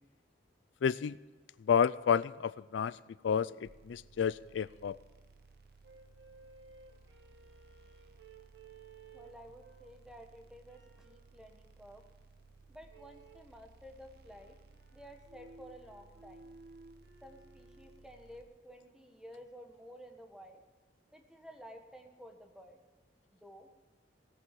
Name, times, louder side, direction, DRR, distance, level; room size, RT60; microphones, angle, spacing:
voice 1, 0.8-1.2 1.6-3.0 3.2-5.0, left 7 dB, 85° left, 18 dB, 0.4 m, -30 dB
sound 1, 3.6-18.4, right 4 dB, 60° right, 1.0 m, -60 dB
sound 2, 5.8-10.1 10.6-11.3 12.9-13.5 14.1-18.1, right 3 dB, 80° right, 1.9 m, -58 dB
voice 2, 9.1-12.0 12.7-14.6 14.9-16.5 17.2-20.6 21.1-22.8 23.3-23.7, equal, 5° right, 3 dB, 1.5 m, -53 dB
17.0 x 8.3 x 7.6 m, 1.3 s
head